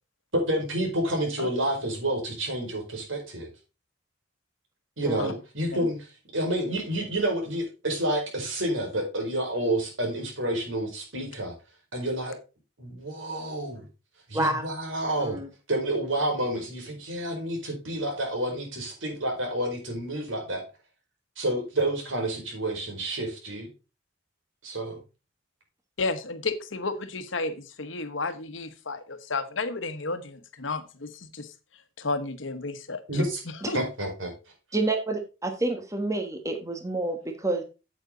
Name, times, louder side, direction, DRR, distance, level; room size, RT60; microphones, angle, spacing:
voice 1, 0.3-3.5 5.0-6.0 6.3-11.5 11.9-12.4 12.8-13.8 14.3-15.4 15.7-20.6 21.4-23.7 24.6-25.0 33.1-33.4 33.7-34.3, right 1 dB, 80° right, 1 dB, 4.9 m, -29 dB
voice 2, 15.2-15.5 34.7-37.6, right 2 dB, 15° right, 6 dB, 1.3 m, -28 dB
voice 3, 26.0-31.5 32.0-33.0 33.7-33.8, left 3 dB, 75° left, 11 dB, 1.2 m, -32 dB
8.9 x 8.2 x 3.9 m, 0.30 s
head